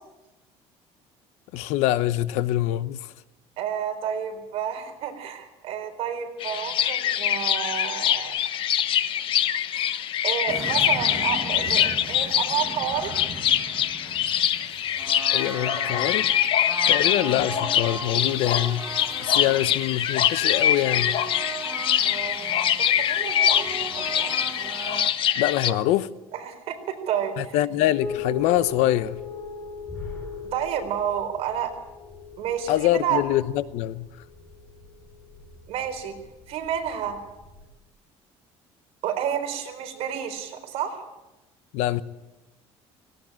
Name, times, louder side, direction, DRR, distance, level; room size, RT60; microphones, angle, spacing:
voice 1, 1.5-3.0 15.3-16.3 16.9-18.9 19.2-21.1 25.4-26.1 27.4-29.2 32.7-34.1 41.7-42.0, left 14 dB, 85° left, 15 dB, 0.9 m, -24 dB
voice 2, 3.6-8.3 10.2-13.1 19.3-19.4 22.8-24.3 26.3-27.6 30.5-31.8 32.4-33.2 35.7-36.1 36.5-37.2 39.0-41.0, right 9 dB, 60° right, 5 dB, 4.2 m, -30 dB
sound 1, 6.4-25.7, left 10 dB, 50° left, 1.0 m, -24 dB
sound 2, 10.5-25.1, right 5 dB, 25° right, 1.7 m, -38 dB
sound 3, 28.0-37.6, left 3 dB, 10° left, 6.4 m, -39 dB
18.0 x 17.5 x 8.9 m, 1.0 s
cardioid pair, 150°, 11 cm